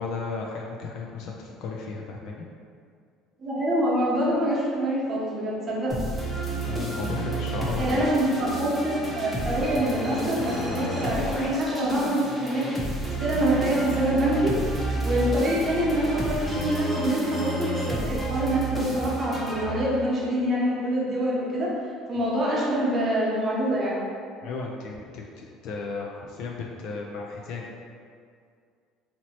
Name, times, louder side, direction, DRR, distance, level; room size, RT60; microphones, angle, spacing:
voice 1, 0.0-2.4 6.6-8.0 22.1-22.3 24.4-27.7, left 4 dB, 65° left, -1 dB, 0.3 m, -34 dB
voice 2, 3.4-5.9 7.8-12.7 13.2-14.5 15.0-21.7 22.1-24.0, right 1 dB, 35° right, -6 dB, 0.9 m, -25 dB
sound 1, 5.9-20.2, right 1 dB, 10° left, 0.7 m, -31 dB
2.9 x 2.7 x 2.8 m, 2.2 s
cardioid pair, 115°, 0 cm